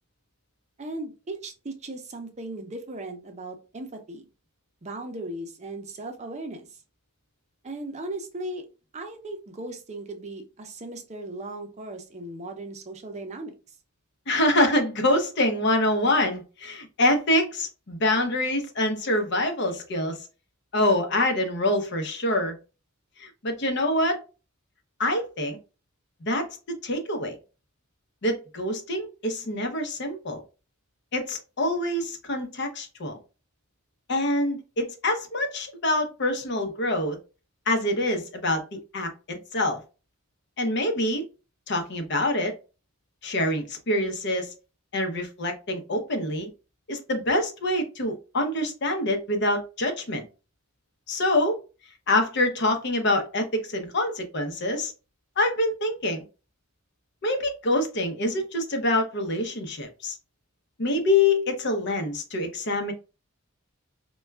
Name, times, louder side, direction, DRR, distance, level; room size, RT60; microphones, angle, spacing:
voice 1, 0.8-4.3 4.8-6.8 7.6-8.7 8.9-13.6, right 2 dB, 35° right, 0.6 m, -37 dB
voice 2, 14.3-20.2 20.7-22.6 23.2-24.2 25.0-25.6 26.2-27.3 28.2-30.4 31.1-33.2 34.1-37.2 37.7-39.8 40.6-41.3 41.7-42.5 43.2-44.5 44.9-46.5 46.9-50.2 51.1-51.6 52.1-54.9 55.4-56.2 57.2-60.2 60.8-62.9, left 1 dB, 60° left, 0.7 m, -25 dB
4.2 x 2.3 x 2.3 m
head